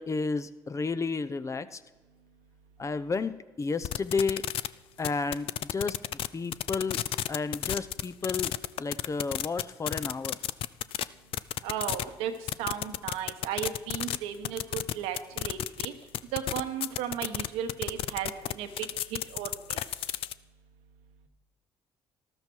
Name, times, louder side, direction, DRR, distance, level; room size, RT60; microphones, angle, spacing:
voice 1, 0.0-1.8 2.8-4.4 5.0-6.0 6.3-7.0 7.3-8.5 8.8-10.4, left 4 dB, 30° left, 13 dB, 0.8 m, -31 dB
sound 1, 3.8-4.7 5.0-6.3 6.5-11.0 11.3-12.0 12.5-14.2 14.4-15.9 16.1-20.3, left 13 dB, 65° left, 0.4 m, -31 dB
voice 2, 11.6-12.3 12.6-15.9 16.3-19.8, right 9 dB, 85° right, 6 dB, 1.2 m, -35 dB
13.0 x 13.0 x 4.7 m, 1.2 s
supercardioid pair, 65°, 10 cm